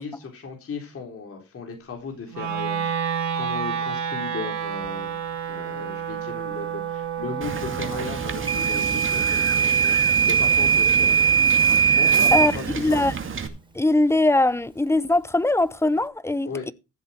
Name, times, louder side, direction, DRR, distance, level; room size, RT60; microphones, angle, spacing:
voice 1, 0.0-2.9 3.4-11.2 12.0-13.0 16.5-16.7, left 5 dB, 50° left, 4.1 m, -36 dB
Wind instrument woodwind instrument, 2.3-12.5, right 8 dB, 65° right, 3.4 m, -31 dB
Wind / Boat Water vehicle, 7.4-13.5, right 5 dB, 40° right, 2.2 m, -32 dB
Microwave oven / Alarm, 8.5-12.6, right 7 dB, 15° right, 1.8 m, -19 dB
voice 2, 12.3-13.1 13.7-16.7, left 2 dB, 10° left, 0.7 m, -21 dB
15.0 x 7.6 x 4.4 m
cardioid pair, 90°, 30 cm